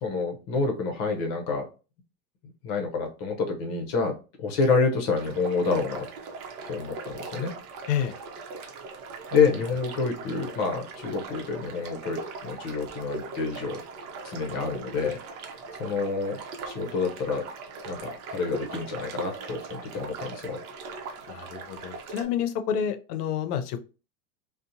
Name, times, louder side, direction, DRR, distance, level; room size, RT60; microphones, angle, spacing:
voice 1, 0.0-1.6 2.6-6.1 6.7-7.5 9.3-13.8 14.2-15.2 15.8-16.4 16.7-17.4 17.9-20.6, left 4 dB, 35° left, 3 dB, 0.6 m, -28 dB
sound 1, 5.2-22.2, right 4 dB, 70° right, 0.8 m, -40 dB
voice 2, 21.3-23.8, left 8 dB, 85° left, 9 dB, 0.6 m, -29 dB
2.8 x 2.1 x 2.5 m, 0.33 s
supercardioid pair, 155°, 46 cm